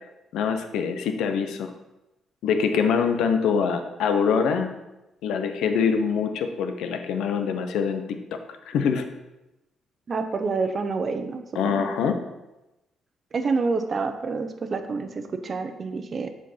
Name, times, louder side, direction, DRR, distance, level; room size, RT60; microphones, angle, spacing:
voice 1, 0.3-1.7 2.4-4.7 5.2-8.0 8.7-9.1 11.5-12.2, left 6 dB, 85° left, 7 dB, 0.8 m, -24 dB
voice 2, 10.1-11.8 13.3-16.3, right 4 dB, 45° right, 7 dB, 0.8 m, -28 dB
7.5 x 4.5 x 5.5 m, 0.98 s
cardioid pair, 90°, 0 cm